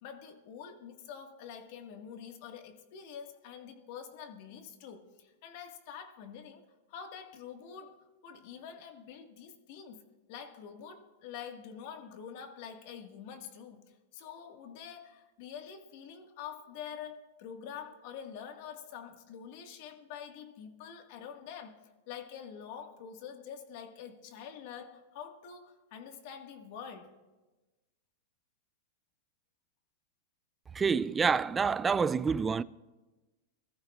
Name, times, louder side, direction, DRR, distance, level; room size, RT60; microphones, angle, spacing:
voice 1, 0.0-6.6 6.9-8.0 8.2-10.0 10.3-13.8 14.1-21.8 22.1-27.1, left 7 dB, 55° left, 1.6 m, -46 dB
voice 2, 30.7-32.6, right 5 dB, 15° right, 0.3 m, -27 dB
25.0 x 14.0 x 2.4 m
supercardioid pair, 135°, 0 cm